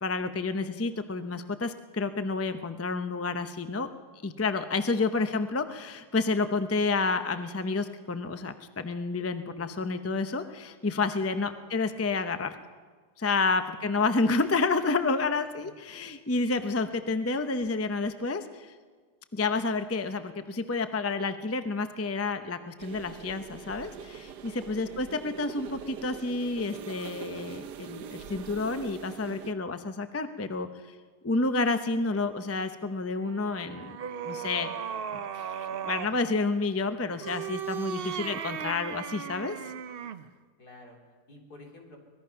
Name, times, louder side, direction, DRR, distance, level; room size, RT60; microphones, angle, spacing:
voice 1, 0.0-3.9 4.2-12.6 13.2-18.7 19.3-30.7 31.2-34.0 34.2-34.7 35.1-39.6, left 3 dB, 20° left, 9 dB, 0.4 m, -30 dB
sound 1, 22.8-29.5, right 8 dB, 90° right, 1.5 m, -43 dB
sound 2, 33.2-36.2 37.1-40.3, right 8 dB, 60° right, 0.6 m, -36 dB
voice 2, 37.8-38.3 40.6-41.0 41.3-42.0, left 2 dB, 70° left, 0 dB, 4.0 m, -51 dB
24.0 x 19.5 x 5.8 m, 1.5 s
omnidirectional pair, 1.7 m